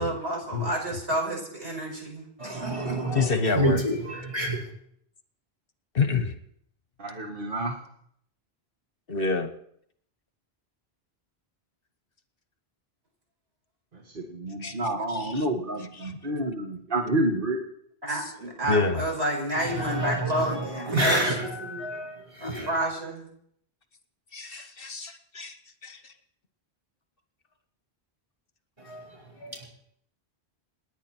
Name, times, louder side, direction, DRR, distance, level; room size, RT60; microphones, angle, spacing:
voice 1, 0.0-3.0 18.0-21.8 22.4-23.3, right 1 dB, 75° right, -1 dB, 6.0 m, -30 dB
voice 2, 2.4-3.3 3.5-4.6 19.6-22.7 28.8-29.1 29.4-29.6, right 1 dB, 30° right, -3 dB, 5.4 m, -29 dB
voice 3, 3.1-3.8 5.9-6.4 9.1-9.5 14.6-14.7 15.1-15.4 15.9-16.1 18.7-19.0 24.3-25.6 25.8-26.1, left 4 dB, 60° left, 8 dB, 1.4 m, -27 dB
voice 4, 7.0-7.8 14.2-17.6, right 1 dB, 55° right, 1 dB, 1.9 m, -29 dB
28.0 x 10.5 x 4.5 m, 0.68 s
omnidirectional pair, 1.1 m